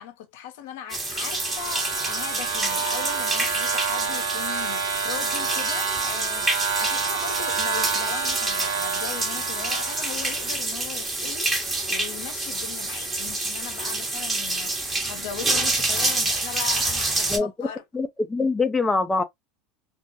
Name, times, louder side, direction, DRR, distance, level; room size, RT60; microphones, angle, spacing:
voice 1, 0.0-17.8, left 10 dB, 75° left, 0.5 m, -38 dB
sound 1, 0.9-17.4, right 2 dB, 20° right, 1.0 m, -27 dB
sound 2, 0.9-10.6, right 7 dB, 80° right, 0.7 m, -29 dB
voice 2, 17.3-17.7 17.9-19.2, left 3 dB, 15° left, 0.4 m, -24 dB
2.2 x 2.0 x 2.7 m
hypercardioid pair, 95°, 0 cm